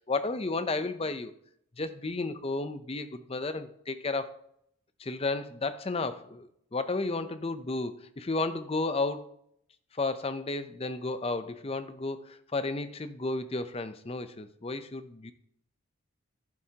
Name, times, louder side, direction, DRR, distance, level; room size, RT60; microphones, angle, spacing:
voice 1, 0.0-1.3 1.8-4.4 5.0-9.3 9.9-15.3, left 3 dB, 25° left, 11 dB, 0.5 m, -33 dB
11.0 x 11.0 x 2.9 m, 0.72 s
head